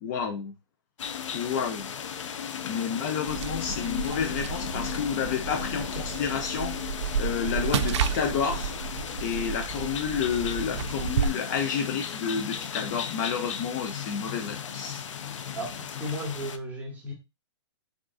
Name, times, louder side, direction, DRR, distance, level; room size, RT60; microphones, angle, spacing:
voice 1, 0.0-0.5 1.3-1.9 2.6-8.9 9.2-15.0, left 7 dB, 40° left, 0.5 m, -30 dB
sound 1, 1.0-16.6, left 8 dB, 90° left, 0.4 m, -36 dB
sound 2, 3.2-11.3, right 7 dB, 70° right, 0.4 m, -32 dB
voice 2, 15.5-17.1, equal, 10° right, 0.9 m, -35 dB
3.6 x 2.5 x 2.3 m
hypercardioid pair, 145°, 15 cm